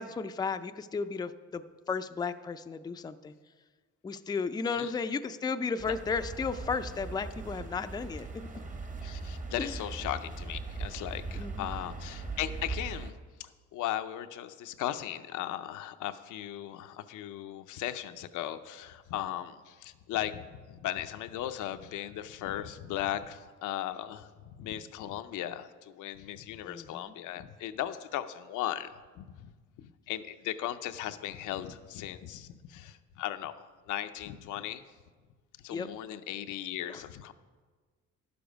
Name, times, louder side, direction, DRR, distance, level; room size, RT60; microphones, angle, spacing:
voice 1, 0.0-3.3 4.0-8.5 9.6-9.8 11.3-11.7 26.6-27.1 35.7-35.9 36.9-37.0, left 5 dB, 15° left, 10 dB, 0.3 m, -34 dB
sound 1, 5.8-13.1, right 3 dB, 25° right, 1.0 m, -40 dB
voice 2, 9.0-13.1 13.4-24.3 24.6-29.5 29.8-34.8 35.6-37.3, left 12 dB, 85° left, 9 dB, 0.6 m, -37 dB
11.5 x 6.9 x 5.1 m, 1.5 s
cardioid pair, 90°, 30 cm